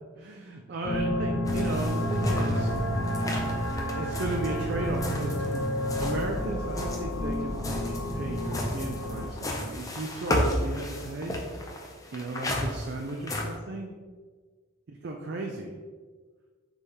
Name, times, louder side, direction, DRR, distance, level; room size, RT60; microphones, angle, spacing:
voice 1, 0.2-2.7 3.7-11.4 12.1-13.9 15.0-15.7, right 2 dB, 55° right, 1 dB, 0.4 m, -35 dB
sound 1, 0.8-9.3, equal, 90° left, 0.5 m, -30 dB
sound 2, 1.4-6.3 6.6-13.6, left 1 dB, 15° left, 0.4 m, -34 dB
4.1 x 3.5 x 3.4 m, 1.5 s
head